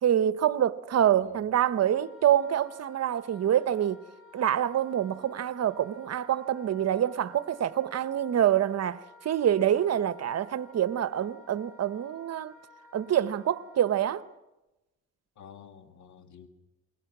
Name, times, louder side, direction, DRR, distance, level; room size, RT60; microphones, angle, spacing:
voice 1, 0.0-4.0 4.3-12.5 12.9-14.2, right 10 dB, 55° right, 1.0 m, -26 dB
voice 2, 1.1-1.5 15.4-16.5, left 8 dB, 75° left, 2.4 m, -50 dB
Wind instrument woodwind instrument, 1.8-14.2, left 3 dB, 45° left, 6.2 m, -54 dB
28.5 x 21.5 x 6.1 m
cardioid pair, 90°, 30 cm